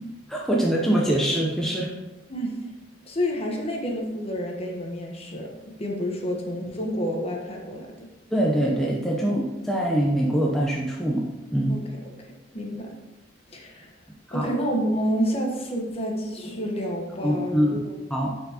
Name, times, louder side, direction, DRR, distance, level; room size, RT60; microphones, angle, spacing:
voice 1, 0.3-1.9 8.3-11.2 11.5-11.8 14.3-14.5 17.2-17.8 18.1-18.3, equal, ahead, -4 dB, 0.6 m, -23 dB
voice 2, 2.3-2.6 3.1-5.5 5.8-8.1 11.7-11.8 12.2-12.3 12.5-12.9 13.5-14.0 14.3-18.0, equal, 30° left, 0 dB, 1.0 m, -29 dB
9.5 x 4.6 x 2.8 m, 1.1 s
head